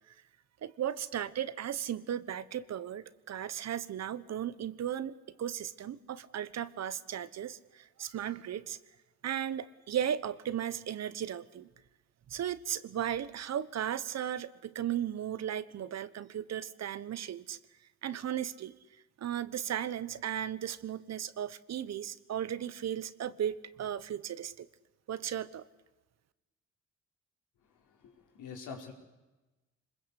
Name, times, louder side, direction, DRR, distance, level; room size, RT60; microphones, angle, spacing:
voice 1, 0.6-5.1 5.4-8.8 9.2-11.7 12.3-17.6 18.0-18.7 19.2-24.7 25.1-25.6, right 10 dB, 60° right, 15 dB, 1.3 m, -36 dB
voice 2, 28.0-28.9, left 5 dB, 80° left, 2 dB, 4.8 m, -45 dB
26.0 x 21.0 x 8.4 m, 1.1 s
cardioid pair, 90°, 30 cm